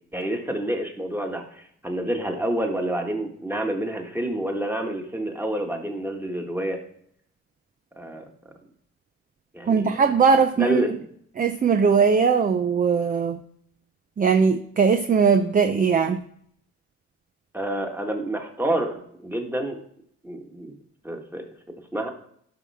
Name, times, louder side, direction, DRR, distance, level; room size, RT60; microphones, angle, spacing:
voice 1, 0.1-6.8 8.0-8.2 9.5-9.9 10.6-10.9 17.5-19.8 20.2-20.8 21.0-21.4 21.9-22.1, right 1 dB, 5° right, 3 dB, 1.6 m, -28 dB
voice 2, 9.6-10.8 11.4-13.4 14.2-16.2, right 5 dB, 30° right, 8 dB, 0.6 m, -20 dB
12.0 x 5.5 x 3.5 m, 0.67 s
cardioid pair, 90°, 30 cm